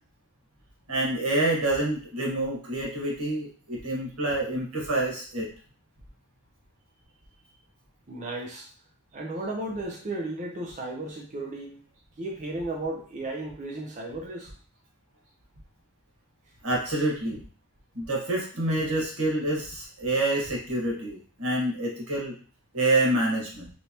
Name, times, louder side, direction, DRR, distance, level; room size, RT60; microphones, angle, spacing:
voice 1, 0.9-5.5 16.6-17.4 17.9-22.3 22.7-23.7, right 2 dB, 80° right, -2 dB, 1.6 m, -27 dB
voice 2, 8.1-8.7 9.1-11.8 12.2-14.5, right 2 dB, 35° right, -1 dB, 0.6 m, -34 dB
4.4 x 3.3 x 2.9 m, 0.42 s
head